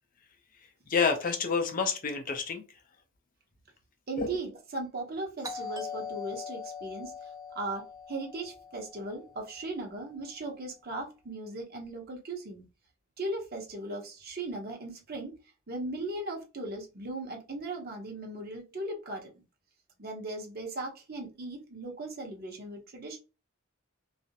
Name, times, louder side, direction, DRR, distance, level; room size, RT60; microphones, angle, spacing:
voice 1, 0.9-2.6 4.2-4.3, left 5 dB, 40° left, 0.5 m, -28 dB
voice 2, 4.1-12.6 13.2-15.4 15.7-19.3 20.0-23.2, right 2 dB, 45° right, 0.8 m, -38 dB
Doorbell, 5.4-10.0, left 5 dB, 15° right, 0.4 m, -42 dB
2.4 x 2.0 x 2.7 m
head